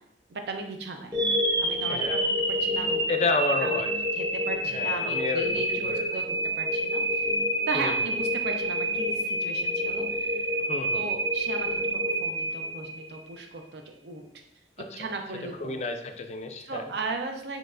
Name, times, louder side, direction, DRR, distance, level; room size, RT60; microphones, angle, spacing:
voice 1, 0.3-1.2 1.6-2.2 2.5-3.0 3.5-3.8 4.1-6.2 6.6-7.3 7.7-10.5 10.9-14.2 15.0-15.8 16.6-17.6, right 3 dB, 70° right, 4 dB, 0.6 m, -36 dB
sound 1, 1.1-13.2, right 1 dB, 20° right, 0.6 m, -28 dB
voice 2, 3.1-3.9 4.7-6.1 7.7-8.0 10.7-11.0 14.8-14.9 15.6-16.9, left 3 dB, 40° left, 7 dB, 0.4 m, -30 dB
4.5 x 4.0 x 2.5 m, 0.75 s
head